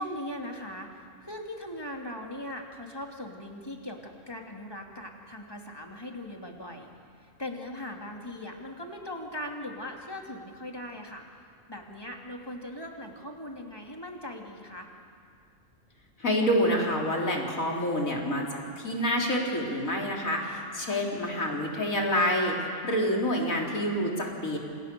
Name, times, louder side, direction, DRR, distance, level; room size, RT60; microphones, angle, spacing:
voice 1, 0.0-6.9 7.2-11.3 11.7-14.9 20.8-21.0, left 1 dB, 15° left, 1 dB, 3.0 m, -39 dB
voice 2, 16.2-18.5 18.8-24.6, equal, 90° left, -1 dB, 4.2 m, -27 dB
29.0 x 27.5 x 7.0 m, 2.3 s
omnidirectional pair, 1.4 m